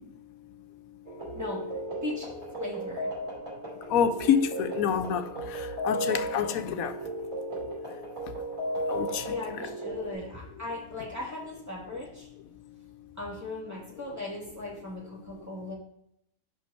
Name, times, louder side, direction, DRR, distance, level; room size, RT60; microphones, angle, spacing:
sound 1, 1.1-10.1, right 1 dB, 65° right, 3.2 m, -35 dB
voice 1, 2.6-3.1 9.3-12.3 13.2-15.7, left 2 dB, 10° right, 2.9 m, -37 dB
voice 2, 3.9-7.0 7.9-8.0 8.3-8.4 8.9-9.3, left 8 dB, 75° left, 1.1 m, -28 dB
6.1 x 5.5 x 4.4 m
omnidirectional pair, 1.5 m